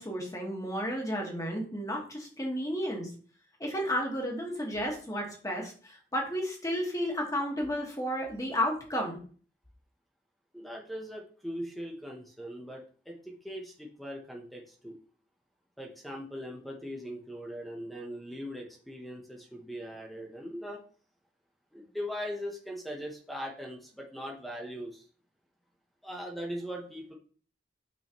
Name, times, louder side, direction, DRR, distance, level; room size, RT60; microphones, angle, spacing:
voice 1, 0.0-3.1 3.6-9.2, equal, 20° left, 0 dB, 1.6 m, -32 dB
voice 2, 10.5-15.0 15.8-20.8 21.7-25.0 26.0-27.1, equal, ahead, 0 dB, 0.9 m, -40 dB
6.4 x 5.0 x 3.0 m, 0.42 s
head